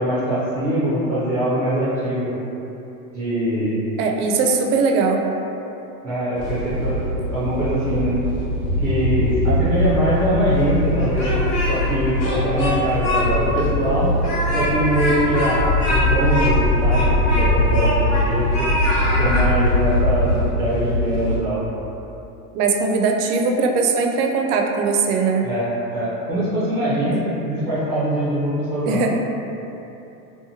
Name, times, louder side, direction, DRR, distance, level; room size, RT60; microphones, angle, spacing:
voice 1, 0.0-2.3 3.1-3.8 6.0-7.0 7.3-8.1 8.8-11.3 11.7-14.1 14.5-18.7 19.2-21.6 25.4-29.1, right 1 dB, 5° right, -10 dB, 0.4 m, -22 dB
voice 2, 4.0-5.2 22.5-25.5 28.8-29.2, right 4 dB, 75° right, 2 dB, 0.5 m, -20 dB
sound 1, 6.4-21.4, left 1 dB, 50° left, 1.0 m, -22 dB
Speech, 11.0-11.9 12.2-13.2 13.6-13.7 14.2-18.3 18.5-19.5, left 1 dB, 35° left, 0.7 m, -24 dB
2.8 x 2.2 x 2.7 m, 2.9 s
supercardioid pair, 120°, 46 cm